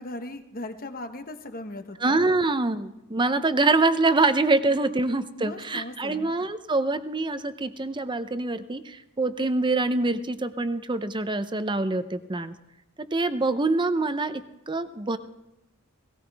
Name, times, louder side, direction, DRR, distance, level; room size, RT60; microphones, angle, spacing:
voice 1, 0.0-2.2 5.4-6.3, left 1 dB, 40° left, 7 dB, 1.1 m, -38 dB
voice 2, 2.0-12.5 13.1-15.2, right 3 dB, 20° right, 11 dB, 0.7 m, -25 dB
18.0 x 18.0 x 3.5 m, 0.93 s
head